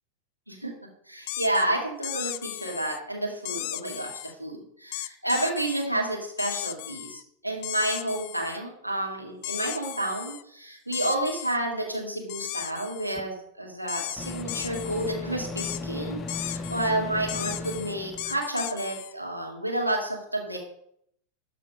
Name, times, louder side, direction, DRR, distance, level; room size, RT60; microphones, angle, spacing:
voice 1, 1.1-20.6, right 1 dB, 90° right, -1 dB, 2.0 m, -30 dB
sound 1, 1.3-1.7 2.0-3.0 3.5-4.3 4.9-5.9 6.4-7.2 7.6-8.6 9.4-10.4 10.9-11.6 12.3-13.2 13.9-15.1 15.6-15.8 16.3-16.9 17.3-19.1, left 17 dB, 45° left, 0.3 m, -36 dB
Microwave oven, 13.2-13.3 14.2-18.4, left 2 dB, 20° left, 0.7 m, -36 dB
12.5 x 4.2 x 5.2 m, 0.70 s
figure-of-eight pair, 90°, 0 cm